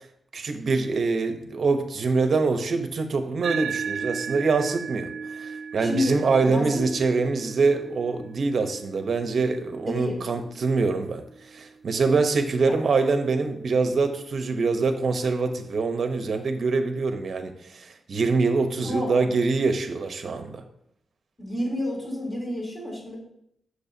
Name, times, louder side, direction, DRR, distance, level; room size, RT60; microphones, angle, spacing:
voice 1, 0.3-11.2 11.5-20.6, right 4 dB, 50° right, 7 dB, 0.9 m, -24 dB
sound 1, 3.4-12.2, right 6 dB, 75° right, 0.4 m, -36 dB
voice 2, 5.8-6.2 6.4-6.9 9.9-10.2 12.6-12.8 18.8-19.1 21.4-23.2, left 1 dB, 20° left, -3 dB, 2.8 m, -29 dB
12.0 x 6.6 x 2.8 m, 0.73 s
wide cardioid pair, 175°, 0 cm